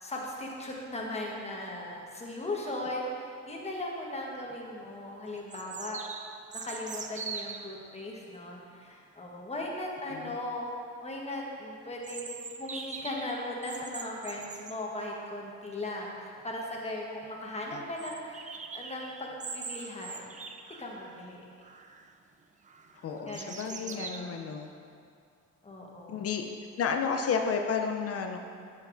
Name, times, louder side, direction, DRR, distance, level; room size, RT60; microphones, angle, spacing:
voice 1, 0.0-6.0 6.5-10.7 11.0-20.3 20.8-21.4 23.3-24.4 25.6-26.3, left 1 dB, 20° left, -2 dB, 1.2 m, -38 dB
sound 1, 4.5-4.6 5.5-7.7 12.0-14.8 16.4-16.5 16.8-16.9 17.2-17.3 18.0-21.2 21.6-22.1 22.6-24.2, right 5 dB, 25° right, 0.4 m, -42 dB
voice 2, 23.0-24.7 26.1-26.4 26.8-28.4, left 6 dB, 50° left, 4 dB, 0.5 m, -31 dB
7.3 x 7.1 x 2.6 m, 2.4 s
cardioid pair, 90°, 30 cm